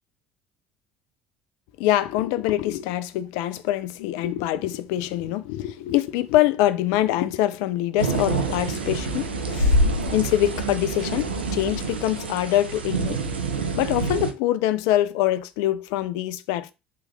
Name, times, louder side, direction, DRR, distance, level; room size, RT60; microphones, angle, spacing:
voice 1, 1.8-13.2 13.7-16.7, left 13 dB, 60° left, 0.4 m, -24 dB
sound 1, 8.0-14.3, right 2 dB, 80° right, 0.5 m, -26 dB
3.4 x 2.9 x 2.2 m
figure-of-eight pair, 60°, 6 cm